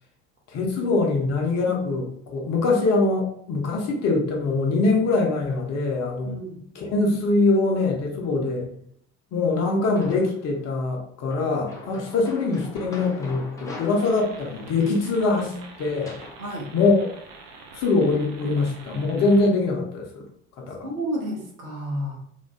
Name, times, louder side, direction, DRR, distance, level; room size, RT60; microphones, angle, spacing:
voice 1, 0.5-6.3 6.8-8.7 9.3-16.2 16.7-17.1 17.7-20.2 20.6-20.9, left 3 dB, 40° left, 0 dB, 0.7 m, -23 dB
voice 2, 6.2-6.6 16.4-16.7 20.8-22.2, equal, 85° right, -1 dB, 0.7 m, -31 dB
sound 1, 10.0-10.6 11.3-16.4, left 2 dB, 10° left, 0.4 m, -42 dB
sound 2, 14.0-19.5, right 4 dB, 50° right, 0.5 m, -45 dB
2.5 x 2.2 x 2.2 m, 0.68 s
figure-of-eight pair, 60°, 41 cm